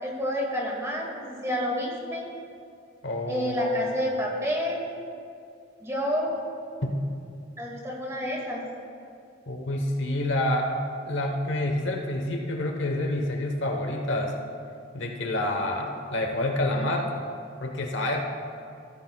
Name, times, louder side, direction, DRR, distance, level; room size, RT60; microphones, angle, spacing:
voice 1, 0.0-2.3 3.3-4.8 5.8-6.4 7.6-8.6, equal, 15° right, -2 dB, 2.1 m, -29 dB
voice 2, 3.0-3.9 6.8-7.0 9.5-10.7 11.0-14.3 14.9-17.1 17.6-18.2, left 1 dB, 65° left, 2 dB, 1.1 m, -28 dB
16.0 x 13.5 x 2.4 m, 2.4 s
head